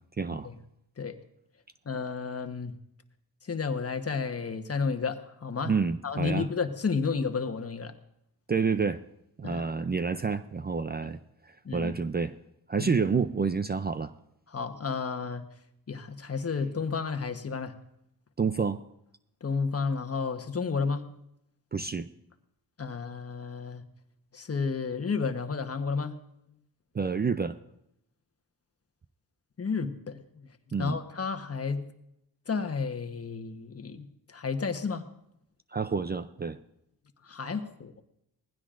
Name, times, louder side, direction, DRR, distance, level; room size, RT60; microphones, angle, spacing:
voice 1, 0.2-0.5 5.6-6.5 8.5-9.0 9.4-12.4 12.7-14.1 18.4-18.8 21.7-22.1 26.9-27.6 30.7-31.0 35.7-36.6, right 5 dB, 25° right, 11 dB, 0.5 m, -29 dB
voice 2, 1.8-2.7 3.4-5.7 6.0-7.9 9.4-9.7 11.6-11.9 12.8-12.9 14.5-15.4 15.9-17.7 19.4-21.1 22.8-23.8 24.3-26.2 29.6-30.5 30.8-31.9 32.5-35.1 37.2-38.0, left 5 dB, 40° left, 7 dB, 1.2 m, -32 dB
19.5 x 15.5 x 2.5 m, 0.80 s
cardioid pair, 65°, 38 cm